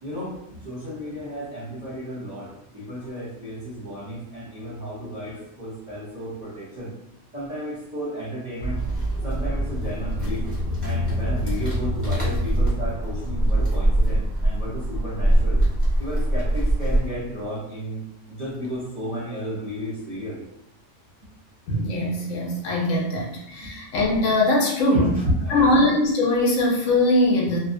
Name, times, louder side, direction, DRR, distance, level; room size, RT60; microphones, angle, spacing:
voice 1, 0.0-6.9 7.3-8.8 9.2-10.5 10.8-15.6 16.0-18.0 18.3-20.4 23.6-23.8 24.9-25.8, equal, 40° right, -8 dB, 0.7 m, -32 dB
sound 1, 8.6-17.1, right 1 dB, ahead, 0.9 m, -23 dB
voice 2, 21.7-25.1 25.5-27.6, left 1 dB, 75° left, -1 dB, 1.0 m, -21 dB
2.6 x 2.1 x 2.5 m, 0.79 s
omnidirectional pair, 1.4 m